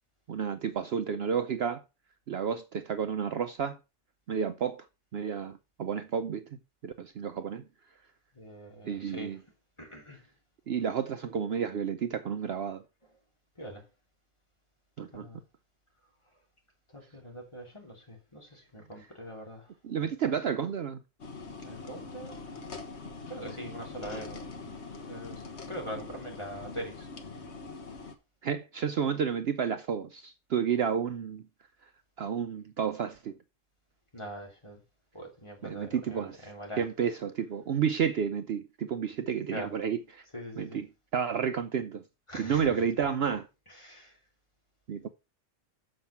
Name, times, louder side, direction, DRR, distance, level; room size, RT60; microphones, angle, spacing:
voice 1, 0.3-1.8 2.3-3.8 4.3-4.8 5.1-6.4 6.8-7.6 8.8-9.4 10.7-12.8 15.0-15.3 19.8-21.0 28.4-31.4 32.2-33.3 35.6-36.5 36.8-40.2 40.6-40.9 41.1-42.0 42.4-43.4 44.9-45.1, right 7 dB, 60° right, 0.8 m, -31 dB
voice 2, 8.3-9.5 9.8-10.3 13.6-13.9 15.1-15.4 16.9-20.1 21.6-22.5 23.3-27.1 34.1-34.8 35.1-36.9 39.5-39.7 40.3-40.8 42.3-43.1 43.7-44.2, equal, 25° left, 2.9 m, -43 dB
sound 1, 21.2-28.1, left 4 dB, 60° left, 1.6 m, -43 dB
7.6 x 5.9 x 5.7 m
omnidirectional pair, 1.3 m